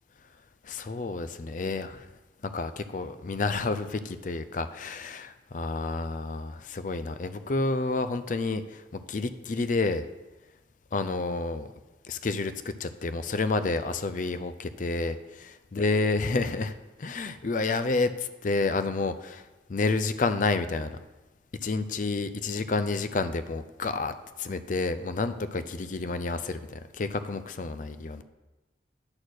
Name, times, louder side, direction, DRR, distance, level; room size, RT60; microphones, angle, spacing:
voice 1, 0.6-2.1 2.5-10.1 10.9-11.7 12.1-19.4 19.7-21.0 21.6-28.2, left 3 dB, 45° left, 11 dB, 0.4 m, -30 dB
9.6 x 4.3 x 6.4 m, 1.1 s
head